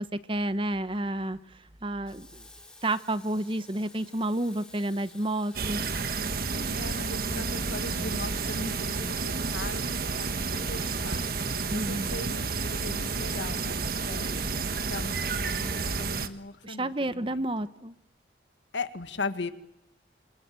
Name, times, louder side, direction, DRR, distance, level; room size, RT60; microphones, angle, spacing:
voice 1, 0.0-2.5 2.8-5.8 11.7-12.1 16.6-17.9, right 1 dB, 30° right, 13 dB, 1.0 m, -30 dB
Water tap faucet / Sink (filling or washing), 2.0-16.8, left 2 dB, 5° left, 3.9 m, -53 dB
sound 1, 5.5-16.3, right 4 dB, 55° right, 1.5 m, -31 dB
voice 2, 6.5-11.2 11.7-14.5 14.9-17.5 18.7-19.5, left 3 dB, 85° left, 10 dB, 1.8 m, -39 dB
27.5 x 25.0 x 7.7 m, 0.85 s
head